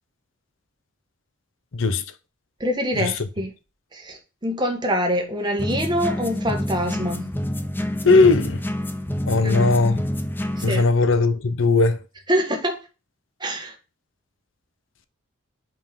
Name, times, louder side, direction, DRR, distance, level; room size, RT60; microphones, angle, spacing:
voice 1, 2.6-3.5 3.9-7.3 9.4-9.8 10.6-10.8 12.3-12.8 13.4-13.8, equal, 20° right, 1.3 m, -25 dB
sound 1, 5.6-10.8, left 1 dB, 10° left, 0.4 m, -28 dB
voice 2, 8.0-8.6 9.3-10.0 10.6-12.0, left 3 dB, 70° left, 0.7 m, -18 dB
5.4 x 5.2 x 5.2 m
head